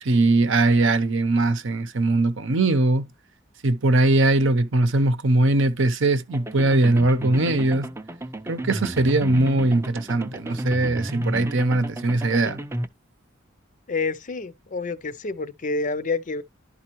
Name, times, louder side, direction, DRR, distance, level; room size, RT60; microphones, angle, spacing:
voice 1, 0.0-3.0 3.6-7.9 8.5-12.6, right 2 dB, 60° right, 0.8 m, -20 dB
sound 1, 6.3-12.9, right 1 dB, 10° right, 0.5 m, -32 dB
voice 2, 13.9-16.4, left 3 dB, 40° left, 0.5 m, -28 dB
11.5 x 4.2 x 2.9 m
head